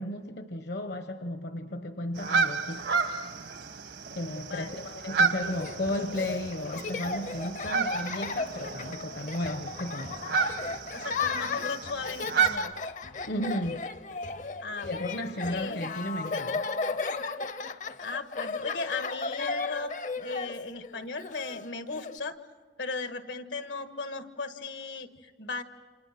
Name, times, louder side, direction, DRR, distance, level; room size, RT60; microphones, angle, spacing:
voice 1, 0.0-2.8 4.1-10.2 13.3-13.8 14.8-16.6, left 1 dB, 70° left, 7 dB, 1.1 m, -34 dB
sound 1, 2.1-12.6, right 5 dB, 75° right, 1.5 m, -31 dB
voice 2, 4.5-4.8 10.9-12.7 14.6-15.1 15.5-15.8 18.0-22.4 22.8-25.6, left 3 dB, 90° left, 8 dB, 1.6 m, -36 dB
Laughter, 5.4-22.2, left 4 dB, 40° left, 0.6 m, -35 dB
29.0 x 27.0 x 5.9 m, 1.4 s
head